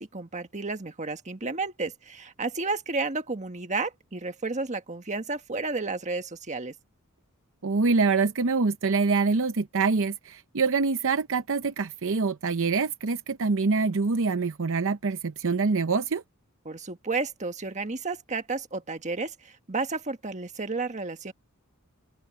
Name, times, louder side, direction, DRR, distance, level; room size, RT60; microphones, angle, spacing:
voice 1, 0.0-6.7 16.6-21.3, right 3 dB, 30° right, 1.5 m, -32 dB
voice 2, 7.6-16.2, right 4 dB, 60° right, 0.7 m, -25 dB
open air
head